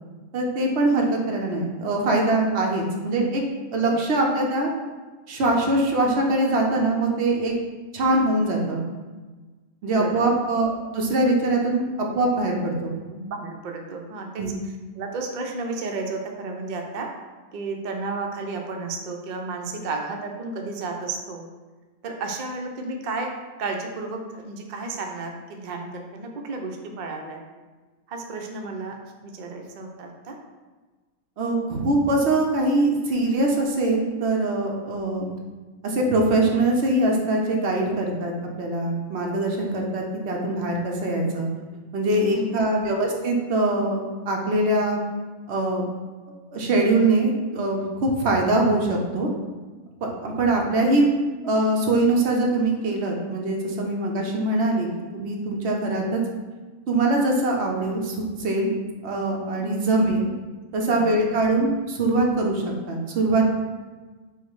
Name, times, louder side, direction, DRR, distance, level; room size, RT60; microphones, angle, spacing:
voice 1, 0.3-3.4 3.7-4.7 5.3-7.5 7.9-8.8 9.8-11.8 12.1-12.9 14.4-14.5 31.4-35.3 35.8-38.3 38.6-41.5 41.9-45.0 45.5-45.8 46.5-49.3 50.0-51.1 51.4-56.2 56.9-58.7 59.0-60.3 60.7-63.4, right 2 dB, 55° right, 0 dB, 0.9 m, -23 dB
voice 2, 9.9-10.3 13.1-14.5 14.9-17.1 17.5-21.5 22.0-23.3 23.6-27.4 28.1-29.0 29.2-30.4 42.3-42.5 60.7-61.3, right 3 dB, 80° right, 2 dB, 0.4 m, -32 dB
5.5 x 2.1 x 4.6 m, 1.3 s
omnidirectional pair, 1.5 m